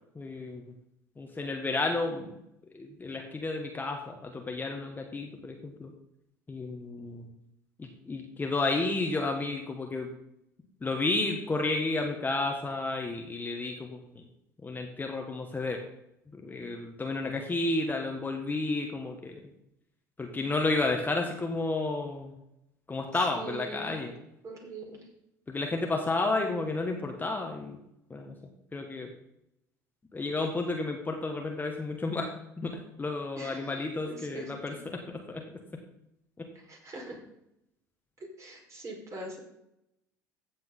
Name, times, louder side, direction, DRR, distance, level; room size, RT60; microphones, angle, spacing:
voice 1, 0.1-0.6 1.2-2.4 2.7-5.9 6.5-7.3 7.8-10.1 10.8-14.0 14.6-15.8 16.4-19.4 20.2-22.3 22.9-24.1 25.5-27.8 28.1-28.3 28.7-29.1 30.1-35.0 35.3-35.4 36.4-36.5, left 3 dB, 20° left, 2 dB, 1.7 m, -31 dB
voice 2, 23.1-24.0 24.4-25.0 33.4-33.7 34.0-34.8 36.7-37.2 38.2-39.4, right 2 dB, 30° right, -1 dB, 4.7 m, -42 dB
15.0 x 7.8 x 3.9 m, 0.82 s
figure-of-eight pair, 65°, 10 cm